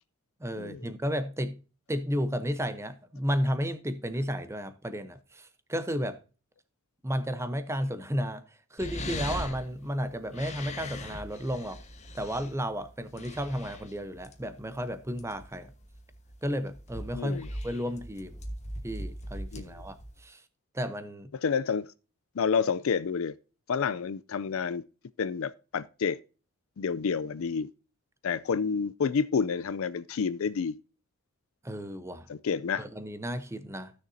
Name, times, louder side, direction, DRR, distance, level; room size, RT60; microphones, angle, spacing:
voice 1, 0.4-1.6 1.9-6.2 7.0-8.4 8.7-11.8 12.1-15.7 16.4-18.4 18.8-20.4 20.7-21.3 31.6-32.3 32.8-33.9, equal, 15° right, 0.8 m, -33 dB
sound 1, 8.8-20.2, left 1 dB, 30° left, 1.2 m, -41 dB
voice 2, 17.2-17.5 19.5-19.7 21.3-21.9 22.4-23.3 23.7-24.8 25.2-26.2 26.8-27.7 28.2-30.8 32.3-32.9, left 6 dB, 65° left, 0.4 m, -29 dB
15.0 x 6.5 x 2.7 m
head